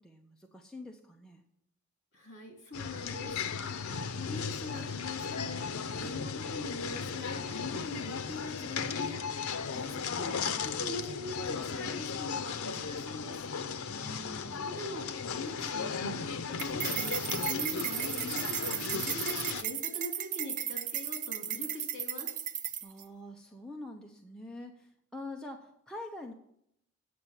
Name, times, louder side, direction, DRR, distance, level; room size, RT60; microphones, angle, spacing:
voice 1, 0.0-1.4 13.9-14.7 22.8-26.3, left 1 dB, 5° left, 0 dB, 0.6 m, -45 dB
voice 2, 2.1-3.7 4.1-5.6 6.0-9.2 9.7-13.4 14.6-15.0 15.3-16.0 16.3-18.4 18.9-22.3, left 2 dB, 55° left, 1 dB, 2.8 m, -42 dB
sound 1, 2.7-19.6, left 6 dB, 90° left, 0.6 m, -36 dB
sound 2, 16.6-23.0, right 9 dB, 35° right, 0.5 m, -35 dB
8.5 x 6.5 x 7.2 m, 0.73 s
head